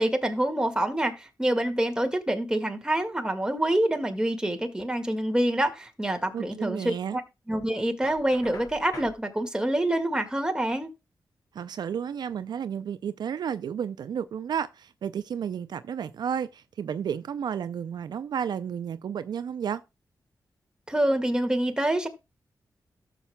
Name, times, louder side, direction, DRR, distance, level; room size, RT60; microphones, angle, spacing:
voice 1, 0.0-7.2 7.5-10.9 20.9-22.1, right 1 dB, 10° right, 1.8 m, -26 dB
voice 2, 6.3-7.2 11.5-19.8, right 8 dB, 80° right, 0.4 m, -32 dB
Knock, 8.0-9.2, left 2 dB, 60° left, 3.7 m, -45 dB
13.5 x 7.0 x 2.2 m
cardioid pair, 60°, 7 cm